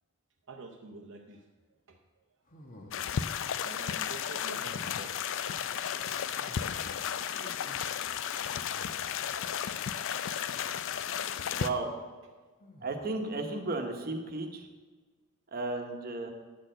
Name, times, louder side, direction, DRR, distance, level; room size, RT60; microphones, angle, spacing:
voice 1, 0.5-1.5 1.9-2.0 3.6-5.2 9.3-9.4, right 3 dB, 60° right, 0 dB, 0.7 m, -47 dB
sound 1, 2.5-3.4 4.5-5.2 6.4-7.2 8.4-9.4 10.5-11.0 12.6-13.3, left 1 dB, 40° left, 1.2 m, -54 dB
sound 2, 2.9-11.7, left 8 dB, 60° left, 0.4 m, -34 dB
voice 2, 6.9-7.7 11.5-11.9 12.8-14.7 15.5-16.3, right 2 dB, 45° right, 4 dB, 1.1 m, -35 dB
10.0 x 4.4 x 7.5 m, 1.3 s
head